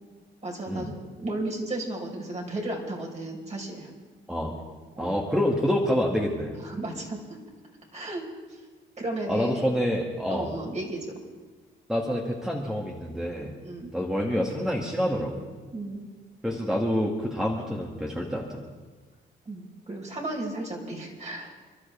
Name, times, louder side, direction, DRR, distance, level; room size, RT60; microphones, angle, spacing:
voice 1, 0.4-0.9 1.2-3.9 5.0-5.2 6.6-7.2 7.9-8.3 9.0-9.5 10.3-11.0 13.5-13.9 15.7-16.0 19.4-21.5, right 2 dB, 35° right, -1 dB, 5.0 m, -34 dB
voice 2, 5.0-6.6 9.3-10.5 11.9-13.5 13.9-15.4 16.4-18.6, equal, 5° right, -2 dB, 2.3 m, -27 dB
29.5 x 12.5 x 3.6 m, 1.3 s
cardioid pair, 90°, 20 cm